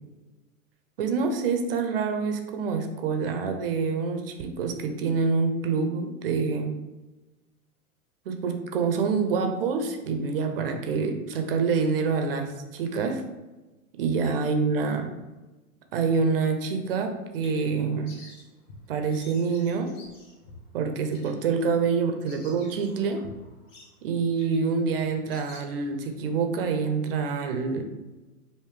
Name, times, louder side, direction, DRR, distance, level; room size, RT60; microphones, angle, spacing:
voice 1, 1.0-6.7 8.3-13.2 14.0-15.1 15.9-18.1 18.9-19.9 20.7-23.2 24.0-27.8, right 5 dB, 40° right, 5 dB, 0.5 m, -26 dB
Bird vocalization bird call bird song, 17.0-26.2, left 2 dB, 35° left, 0.8 m, -51 dB
3.3 x 2.6 x 3.2 m, 1.1 s
hypercardioid pair, 120°, 44 cm